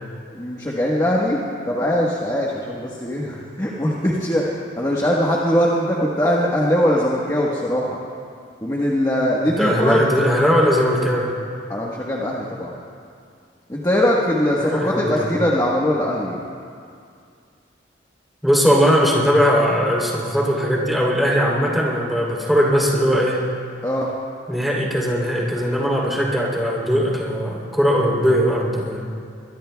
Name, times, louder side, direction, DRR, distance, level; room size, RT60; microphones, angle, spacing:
voice 1, 0.3-8.0 8.6-10.0 11.7-12.7 13.7-16.4 23.8-24.1, equal, 20° left, -5 dB, 1.3 m, -21 dB
voice 2, 9.4-11.3 14.6-15.3 18.4-23.4 24.5-29.0, equal, ahead, -4 dB, 3.2 m, -19 dB
22.5 x 22.0 x 2.3 m, 2.3 s
head